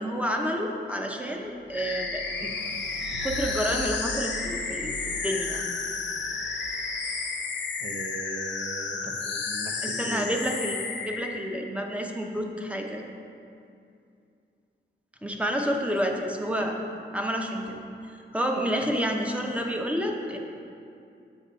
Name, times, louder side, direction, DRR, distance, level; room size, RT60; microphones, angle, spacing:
voice 1, 0.0-2.5 3.2-5.7 9.8-10.8 11.0-13.0 15.2-16.8 17.1-17.8 18.0-20.4, equal, 5° right, 1 dB, 0.7 m, -29 dB
sound 1, 1.4-7.5, right 3 dB, 85° right, 0.6 m, -43 dB
sound 2, 1.7-11.4, left 4 dB, 70° left, 0.7 m, -32 dB
voice 2, 7.8-10.4, right 3 dB, 40° right, 3 dB, 0.7 m, -39 dB
7.1 x 5.3 x 4.0 m, 2.5 s
cardioid pair, 70°, 19 cm